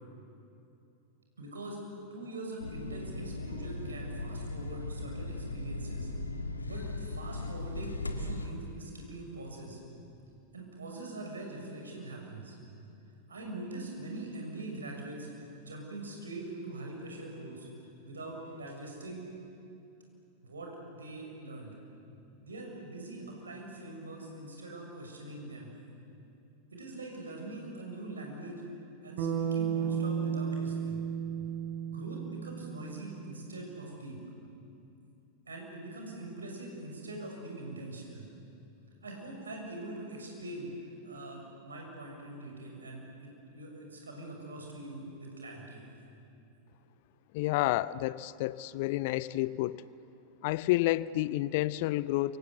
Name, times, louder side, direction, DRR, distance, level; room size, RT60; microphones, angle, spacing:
voice 1, 1.4-1.8 2.1-6.1 6.6-9.8 10.5-12.5 13.3-17.7 18.0-19.3 20.4-21.7 22.4-25.7 26.7-28.6 29.0-31.0 31.8-34.2 35.5-38.3 39.0-40.7 41.0-45.8, right 2 dB, 75° right, 0 dB, 6.6 m, -43 dB
sound 1, 2.6-8.5, left 2 dB, 80° left, 1.9 m, -38 dB
Bass guitar, 29.2-33.6, right 7 dB, 50° right, 3.6 m, -34 dB
voice 2, 47.3-49.8 50.4-52.4, left 17 dB, 50° left, 19 dB, 0.6 m, -30 dB
28.5 x 25.5 x 8.2 m, 2.7 s
figure-of-eight pair, 90°, 0 cm